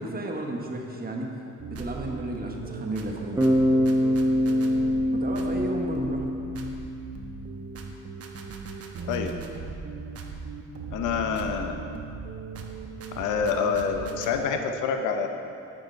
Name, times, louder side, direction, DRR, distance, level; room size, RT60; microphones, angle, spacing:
voice 1, 0.0-1.4 1.7-3.4 5.1-6.3, right 1 dB, 30° right, 1 dB, 1.3 m, -33 dB
sound 1, 1.6-14.4, right 5 dB, 50° right, 1.0 m, -38 dB
Bass guitar, 3.4-7.4, equal, 10° right, 1.1 m, -24 dB
voice 2, 9.0-9.3 10.9-11.8 13.1-15.3, left 6 dB, 85° left, 6 dB, 0.8 m, -27 dB
9.2 x 8.1 x 4.6 m, 2.6 s
cardioid pair, 90°, 30 cm